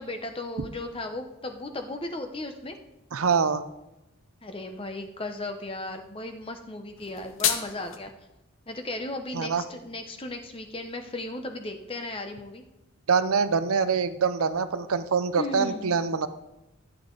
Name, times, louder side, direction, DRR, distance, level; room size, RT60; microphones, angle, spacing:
voice 1, 0.0-2.8 4.4-8.1 8.7-12.6 15.4-15.9, left 2 dB, 25° left, 6 dB, 0.9 m, -36 dB
voice 2, 3.1-3.6 9.3-9.6 13.1-16.3, right 5 dB, 80° right, 12 dB, 0.6 m, -24 dB
sound 1, 7.0-8.0, left 9 dB, 65° left, 1.0 m, -29 dB
14.0 x 8.5 x 3.9 m, 0.97 s
head